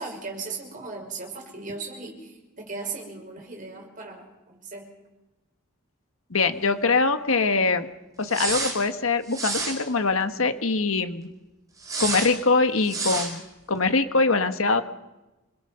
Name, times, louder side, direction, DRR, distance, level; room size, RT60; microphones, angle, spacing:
voice 1, 0.0-4.9, right 3 dB, 40° right, 1 dB, 5.5 m, -37 dB
voice 2, 6.3-7.9 8.2-11.3 12.0-13.4 13.7-14.8, left 3 dB, 70° left, 8 dB, 1.5 m, -23 dB
sound 1, 8.3-8.8 9.3-9.8 11.8-12.3 12.8-13.3, right 3 dB, 15° right, 4.7 m, -29 dB
27.5 x 21.5 x 5.8 m, 1.0 s
head